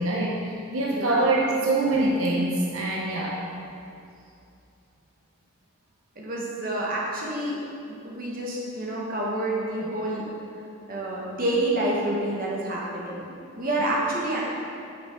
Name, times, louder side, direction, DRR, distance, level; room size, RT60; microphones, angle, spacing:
voice 1, 0.0-3.4, right 2 dB, 75° right, -3 dB, 0.9 m, -24 dB
voice 2, 0.9-1.3 6.1-7.6 7.9-10.3 10.9-13.2 13.6-14.4, right 1 dB, 40° right, -4 dB, 1.4 m, -28 dB
9.4 x 6.0 x 3.8 m, 2.5 s
head